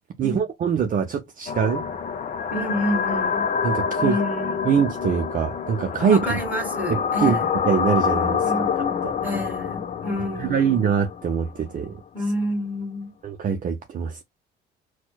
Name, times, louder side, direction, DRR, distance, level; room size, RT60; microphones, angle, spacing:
voice 1, 0.2-1.8 3.6-4.2 4.7-6.4 6.9-7.4 7.7-8.4 9.0-9.1 10.4-11.9 13.2-14.2, right 7 dB, 40° right, 0.5 m, -23 dB
sound 1, 1.5-11.6, left 6 dB, 40° left, 0.5 m, -27 dB
voice 2, 2.5-3.5 4.0-4.7 6.0-7.5 8.4-8.7 9.2-10.8 12.1-13.1, equal, 10° right, 1.7 m, -28 dB
4.3 x 2.2 x 2.2 m
supercardioid pair, 80°, 20 cm